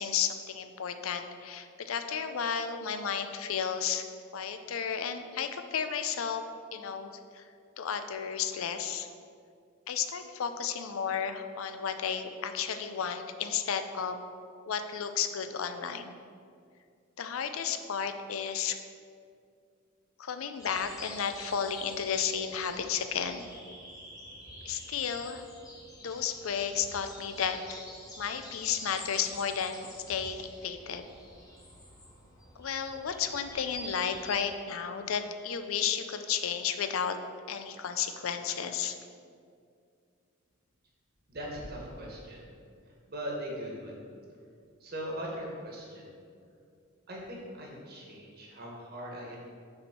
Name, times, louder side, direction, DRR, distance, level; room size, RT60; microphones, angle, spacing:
voice 1, 0.0-4.0 4.3-6.4 6.7-7.5 7.8-9.1 9.9-14.2 14.7-16.1 17.2-18.8 20.2-23.5 24.7-25.4 26.0-27.8 28.2-31.0 32.6-37.2 37.5-39.0, left 7 dB, 80° left, 8 dB, 0.5 m, -33 dB
sound 1, 20.6-34.4, equal, 15° left, 1.2 m, -48 dB
voice 2, 41.3-42.4 43.1-43.9 44.8-46.1 47.1-49.4, equal, 50° right, -2 dB, 1.6 m, -40 dB
6.1 x 4.3 x 6.0 m, 2.3 s
head